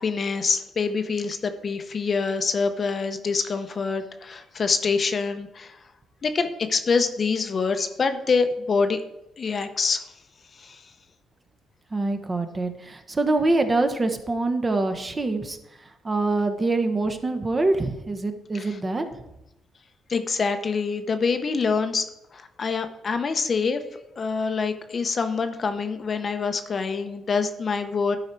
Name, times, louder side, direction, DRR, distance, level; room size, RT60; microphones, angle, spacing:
voice 1, 0.0-5.8 6.2-9.0 9.4-10.0 10.6-10.8 18.5-18.8 20.1-22.0 22.3-23.8 24.2-28.2, left 5 dB, 40° left, 8 dB, 0.7 m, -25 dB
voice 2, 11.9-15.6 16.0-19.1, right 2 dB, 25° right, 7 dB, 1.0 m, -25 dB
11.5 x 4.7 x 4.5 m, 0.91 s
cardioid pair, 90°, 0 cm